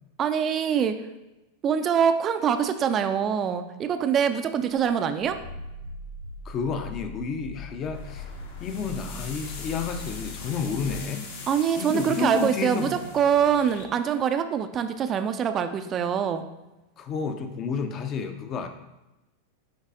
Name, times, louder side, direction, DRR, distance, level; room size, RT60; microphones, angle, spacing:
voice 1, 0.2-1.0 1.6-5.4 11.5-16.4, right 8 dB, 30° right, 9 dB, 0.4 m, -24 dB
Growling, 4.7-11.0, left 3 dB, 90° left, 1.6 m, -40 dB
voice 2, 6.4-8.3 8.6-11.3 11.8-13.1 17.0-18.7, left 5 dB, 30° left, 8 dB, 0.6 m, -31 dB
sound 1, 7.9-13.8, left 4 dB, 55° left, 1.1 m, -42 dB
10.5 x 4.0 x 2.5 m, 0.99 s
figure-of-eight pair, 90°, 0 cm